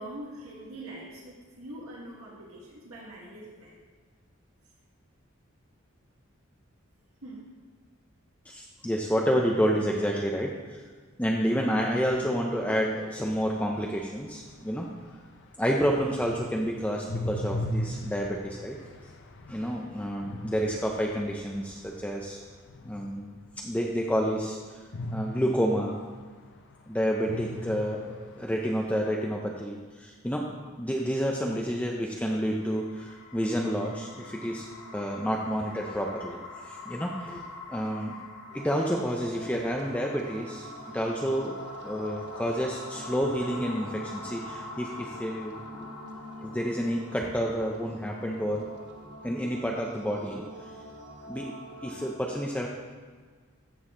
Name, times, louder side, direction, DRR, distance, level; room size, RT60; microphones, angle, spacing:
voice 1, 0.0-3.8 7.2-7.5, right 1 dB, 85° right, -5 dB, 1.9 m, -43 dB
voice 2, 8.5-10.8 11.2-14.9 15.6-18.8 19.5-22.4 22.8-24.8 25.1-26.0 26.9-30.5 30.8-34.7 34.9-36.4 36.6-38.2 38.5-40.7 40.9-41.6 41.8-45.9 46.4-48.7 49.2-50.4 51.3-51.5 51.8-52.7, equal, 5° left, -1 dB, 0.6 m, -29 dB
sound 1, 13.4-23.6 24.9-26.8 27.2-28.8, left 1 dB, 60° left, 0.7 m, -39 dB
sound 2, 32.4-49.6, left 3 dB, 85° left, 1.9 m, -45 dB
sound 3, 38.5-52.1, right 1 dB, 55° right, 1.1 m, -45 dB
14.5 x 6.4 x 3.8 m, 1.5 s
head